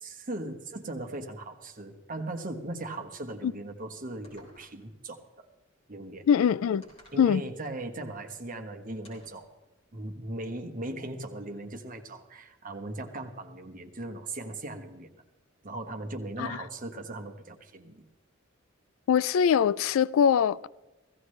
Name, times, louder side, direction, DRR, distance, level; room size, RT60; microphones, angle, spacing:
voice 1, 0.0-5.5 5.9-6.2 7.1-9.5 9.9-15.1 15.6-18.0, right 2 dB, 45° right, 1.3 m, -38 dB
sound 1, 4.2-4.9 6.8-7.3 9.0-9.5, equal, 30° left, 3.9 m, -56 dB
voice 2, 6.3-6.9 7.2-7.4 16.4-16.6 19.1-20.7, left 8 dB, 80° left, 0.3 m, -23 dB
16.5 x 15.0 x 3.2 m
head